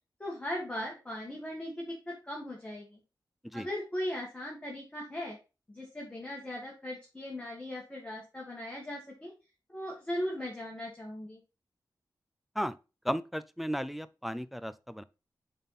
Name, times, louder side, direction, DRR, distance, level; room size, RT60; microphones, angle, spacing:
voice 1, 0.2-3.0 3.5-5.4 5.7-9.3 9.7-11.4, left 1 dB, 15° left, 1.7 m, -38 dB
voice 2, 13.0-15.0, equal, ahead, 0.3 m, -34 dB
7.1 x 4.1 x 3.9 m
wide cardioid pair, 135°, 7 cm